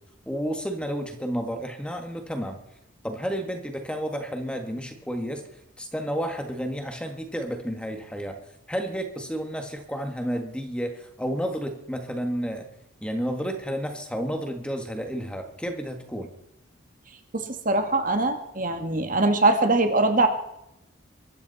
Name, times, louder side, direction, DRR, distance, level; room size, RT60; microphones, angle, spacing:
voice 1, 0.2-2.6 3.0-5.4 5.8-8.4 8.7-12.7 13.0-16.3, equal, 5° left, 5 dB, 1.6 m, -31 dB
voice 2, 17.3-20.3, right 2 dB, 40° right, 6 dB, 1.7 m, -22 dB
23.5 x 13.5 x 4.1 m, 0.84 s
head